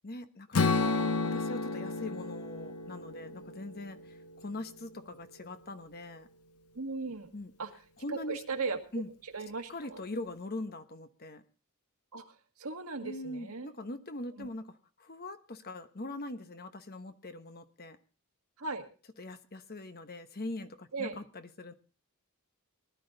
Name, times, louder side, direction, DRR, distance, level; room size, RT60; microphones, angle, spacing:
voice 1, 0.0-6.3 7.3-7.5 8.0-8.4 8.9-9.1 9.7-11.4 13.0-18.0 19.2-21.7, left 2 dB, 45° left, 9 dB, 1.1 m, -42 dB
Strum, 0.5-4.7, left 3 dB, 85° left, 0.8 m, -32 dB
voice 2, 6.7-7.3 7.6-7.7 8.1-9.0 9.3-10.0 12.1-12.2 12.6-13.7 14.4-14.5 18.6-18.9 20.9-21.2, right 4 dB, 75° right, 4 dB, 2.0 m, -37 dB
19.5 x 12.0 x 3.9 m, 0.35 s
head